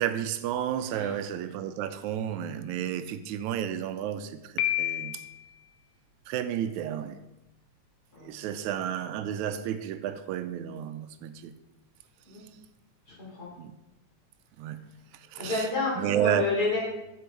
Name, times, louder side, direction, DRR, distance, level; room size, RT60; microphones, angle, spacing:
voice 1, 0.0-5.2 6.3-7.2 8.2-11.5 13.6-13.7 14.6-14.8 15.1-15.7 16.0-16.5, right 10 dB, 85° right, 11 dB, 1.9 m, -31 dB
Piano, 4.6-5.5, left 14 dB, 75° left, 1.3 m, -29 dB
voice 2, 13.2-13.5 15.4-16.8, left 3 dB, 30° left, -5 dB, 3.6 m, -30 dB
8.3 x 7.0 x 4.7 m, 0.97 s
omnidirectional pair, 3.3 m